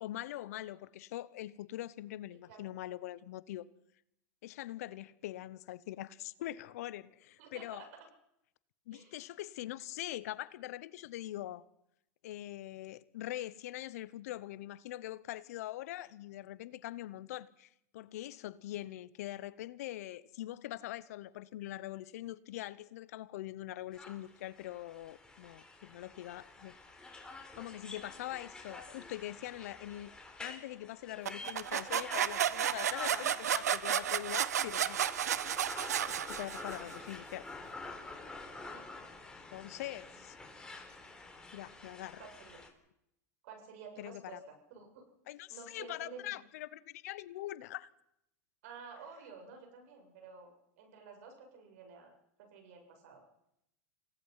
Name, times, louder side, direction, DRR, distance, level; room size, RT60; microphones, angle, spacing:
voice 1, 0.0-3.7 4.4-7.8 8.9-11.6 12.2-26.8 27.6-30.1 30.4-35.0 36.1-37.5 39.5-40.4 41.5-42.2 44.0-44.4 45.3-47.9, left 14 dB, 75° left, 1.0 m, -43 dB
voice 2, 7.4-7.9 8.9-9.1 36.8-37.0 38.6-38.8 42.2-42.6 43.4-45.1 45.5-46.4 48.6-50.5 50.8-53.2, right 5 dB, 70° right, 8.0 m, -51 dB
sound 1, 23.9-42.7, left 3 dB, 10° left, 4.0 m, -49 dB
sound 2, 31.3-36.9, right 10 dB, 90° right, 0.8 m, -33 dB
27.5 x 17.5 x 5.8 m
hypercardioid pair, 105°, 8 cm